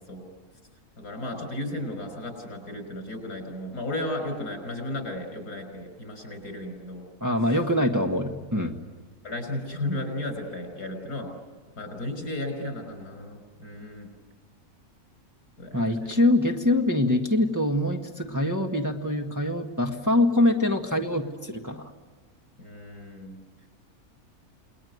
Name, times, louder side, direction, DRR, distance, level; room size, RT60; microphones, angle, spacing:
voice 1, 1.0-7.1 9.2-11.3 11.8-14.1 15.6-15.8 22.6-23.4, left 1 dB, 85° left, 6 dB, 6.0 m, -34 dB
voice 2, 7.2-8.8 15.7-21.9, left 1 dB, 10° right, 3 dB, 1.6 m, -24 dB
29.0 x 20.5 x 9.5 m, 1.4 s
omnidirectional pair, 1.6 m